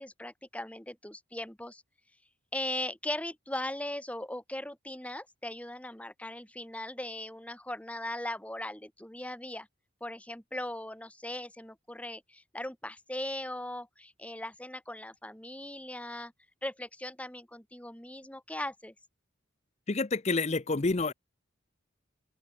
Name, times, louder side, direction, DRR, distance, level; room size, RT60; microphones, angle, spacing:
voice 1, 0.0-1.8 2.5-9.7 10.0-16.3 16.6-18.9, left 1 dB, 5° left, 1.6 m, -39 dB
voice 2, 19.9-21.1, left 3 dB, 35° left, 0.6 m, -28 dB
open air
head